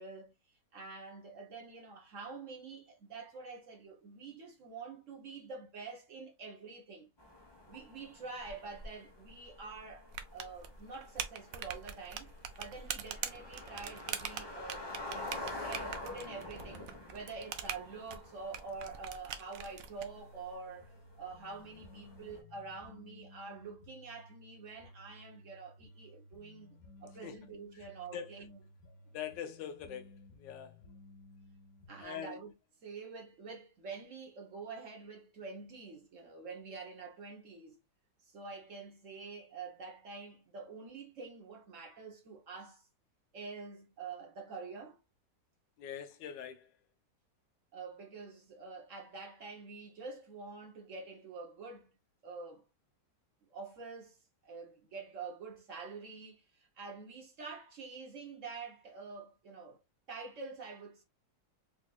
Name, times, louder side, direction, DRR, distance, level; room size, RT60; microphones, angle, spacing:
voice 1, 0.0-7.1 7.7-28.6 31.9-32.5 32.8-37.8 38.2-42.9 43.3-45.0 47.7-51.9 52.2-52.6 53.5-54.2 54.4-59.8 60.1-61.0, right 4 dB, 55° right, 1.1 m, -47 dB
sound 1, 7.2-22.4, left 2 dB, 40° left, 0.3 m, -48 dB
sound 2, 10.1-20.1, right 9 dB, 75° right, 0.8 m, -43 dB
sound 3, 20.0-32.0, left 2 dB, 60° left, 1.2 m, -57 dB
voice 2, 29.1-30.1 30.4-30.7 32.0-32.4 45.8-46.7, left 9 dB, 85° left, 1.3 m, -43 dB
4.5 x 2.6 x 2.2 m
omnidirectional pair, 1.9 m